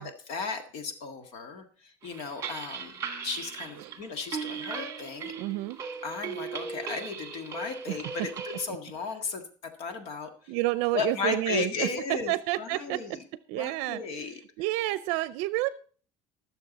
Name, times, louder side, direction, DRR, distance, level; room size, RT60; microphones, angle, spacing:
voice 1, 0.0-2.9 3.2-5.3 6.0-10.5 10.9-13.2 13.5-14.4, left 5 dB, 60° left, 7 dB, 1.7 m, -35 dB
sound 1, 2.0-8.7, right 6 dB, 25° right, 1.8 m, -38 dB
voice 2, 5.4-5.8 7.9-8.0 10.5-11.9 12.3-13.2 13.5-15.7, right 18 dB, 75° right, 15 dB, 0.5 m, -30 dB
20.0 x 7.0 x 4.1 m, 0.43 s
cardioid pair, 155°, 11 cm